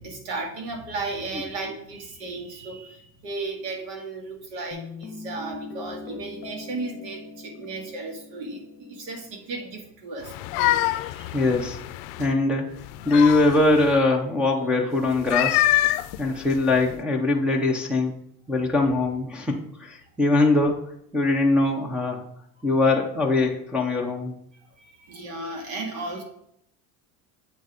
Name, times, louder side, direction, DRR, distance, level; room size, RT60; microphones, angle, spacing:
voice 1, 0.0-11.4 24.8-26.2, right 3 dB, 90° right, 2 dB, 2.0 m, -35 dB
Guitar, 4.7-9.8, left 3 dB, 30° left, 1.1 m, -42 dB
sound 1, 10.2-12.3 12.8-14.0 15.1-17.0, left 15 dB, 75° left, 0.5 m, -26 dB
voice 2, 11.3-11.8 12.2-12.7 13.1-15.6 16.2-18.1 18.5-20.9 21.1-22.2 22.6-24.3, left 2 dB, 5° right, -3 dB, 0.5 m, -22 dB
8.0 x 4.0 x 4.8 m, 0.72 s
cardioid pair, 175°, 41 cm